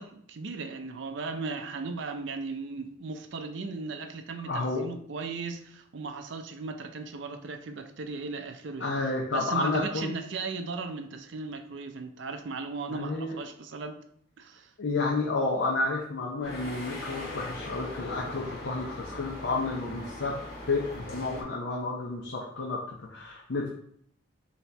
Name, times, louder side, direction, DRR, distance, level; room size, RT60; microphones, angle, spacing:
voice 1, 0.0-9.0 9.3-14.0 14.4-14.7, right 4 dB, 65° right, 0.5 m, -37 dB
voice 2, 4.4-4.8 8.8-10.1 12.9-13.4 14.8-20.4 20.7-23.7, left 3 dB, 70° left, 0.6 m, -30 dB
sound 1, 16.4-21.4, left 1 dB, 50° left, 1.3 m, -40 dB
4.1 x 2.8 x 3.3 m
head